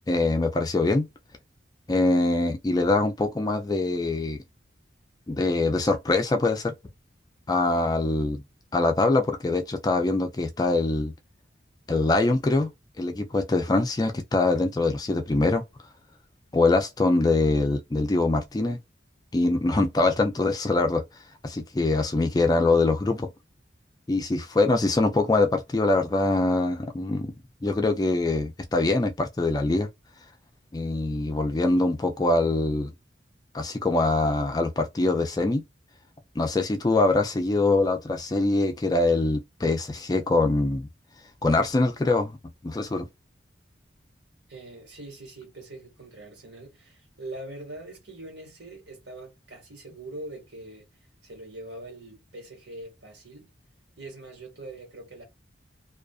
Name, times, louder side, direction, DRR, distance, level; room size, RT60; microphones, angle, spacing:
voice 1, 0.1-1.1 1.9-4.4 5.3-6.7 7.5-8.4 8.7-11.1 11.9-12.7 13.0-15.6 16.5-18.8 19.3-21.0 21.4-23.3 24.1-27.3 27.6-29.9 30.7-32.9 33.5-35.6 36.4-40.9 41.4-42.3 42.6-43.1, left 2 dB, 20° left, 0.3 m, -23 dB
voice 2, 44.5-50.9 51.2-53.5 54.0-55.2, right 2 dB, 70° right, 1.5 m, -42 dB
2.4 x 2.4 x 2.3 m
head